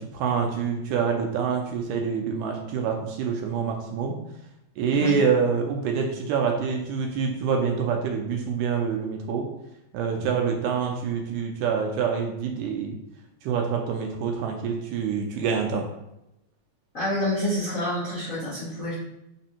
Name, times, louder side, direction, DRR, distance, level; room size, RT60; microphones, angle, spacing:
voice 1, 0.0-4.2 4.8-9.5 9.9-13.0 13.4-15.9, right 6 dB, 80° right, 2 dB, 2.0 m, -26 dB
voice 2, 16.9-18.9, left 1 dB, 55° left, -11 dB, 0.9 m, -28 dB
4.3 x 4.1 x 2.8 m, 0.88 s
omnidirectional pair, 3.9 m